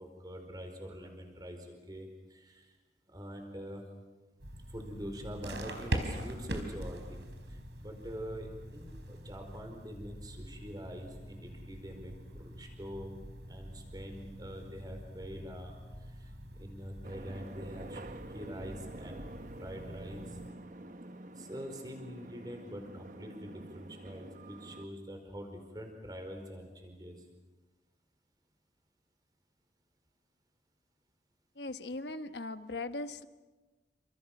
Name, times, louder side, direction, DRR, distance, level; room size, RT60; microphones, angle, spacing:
voice 1, 0.0-2.8 3.1-3.8 4.7-13.1 13.5-18.0 18.3-19.3 19.6-20.4 21.4-27.2, equal, 20° right, 4 dB, 4.8 m, -45 dB
sound 1, 4.4-20.5, right 1 dB, 85° right, 4.3 m, -43 dB
sound 2, 17.0-24.8, right 2 dB, 45° right, 1.1 m, -48 dB
voice 2, 31.5-33.3, left 2 dB, 75° left, 10 dB, 1.2 m, -39 dB
29.5 x 27.5 x 6.1 m, 1.2 s
head